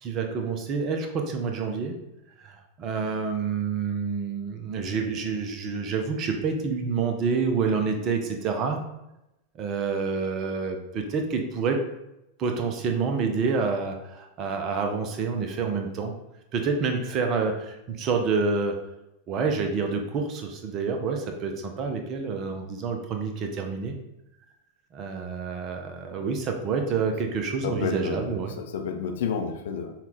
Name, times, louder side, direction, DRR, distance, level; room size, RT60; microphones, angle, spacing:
voice 1, 0.0-1.9 2.4-8.8 9.6-11.8 12.4-16.1 16.5-18.8 19.3-23.9 24.9-28.6, right 5 dB, 35° right, 4 dB, 0.7 m, -28 dB
voice 2, 27.6-29.9, left 6 dB, 55° left, 4 dB, 0.6 m, -30 dB
5.7 x 2.4 x 3.5 m, 0.89 s
figure-of-eight pair, 90°, 0 cm